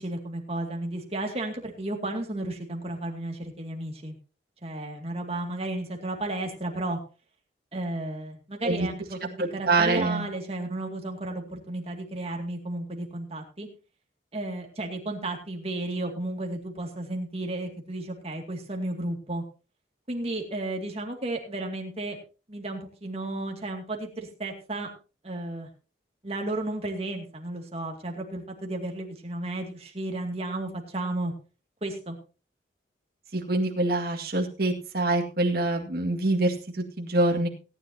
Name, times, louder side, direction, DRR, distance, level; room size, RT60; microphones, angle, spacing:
voice 1, 0.0-4.1 4.6-7.0 7.7-13.7 14.3-19.4 20.1-22.2 22.5-24.9 25.2-25.7 26.2-31.3 31.8-32.2, right 2 dB, 35° right, 2 dB, 2.3 m, -33 dB
voice 2, 9.4-10.3 33.3-37.5, right 2 dB, 55° right, 1 dB, 2.1 m, -25 dB
18.0 x 10.5 x 2.9 m, 0.34 s
head